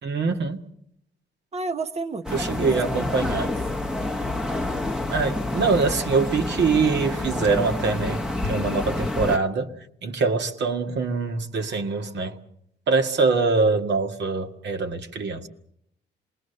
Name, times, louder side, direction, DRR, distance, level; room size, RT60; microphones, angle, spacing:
voice 1, 0.0-0.6 2.3-3.5 5.1-9.7 10.0-12.4 12.9-15.5, right 4 dB, 60° right, 1.9 m, -24 dB
voice 2, 1.5-3.5, right 3 dB, 35° right, 1.1 m, -32 dB
sound 1, 2.2-9.4, left 2 dB, 5° right, 1.1 m, -28 dB
27.0 x 20.5 x 6.8 m
cardioid pair, 90°, 20 cm